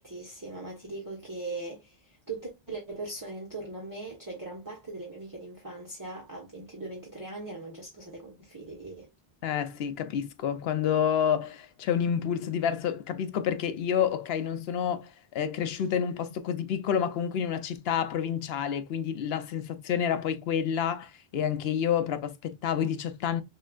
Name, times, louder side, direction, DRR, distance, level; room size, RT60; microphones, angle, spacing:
voice 1, 0.0-9.1, right 2 dB, 20° right, 1.1 m, -40 dB
voice 2, 9.4-23.4, left 8 dB, 80° left, 0.8 m, -29 dB
6.3 x 2.4 x 2.3 m
omnidirectional pair, 1.0 m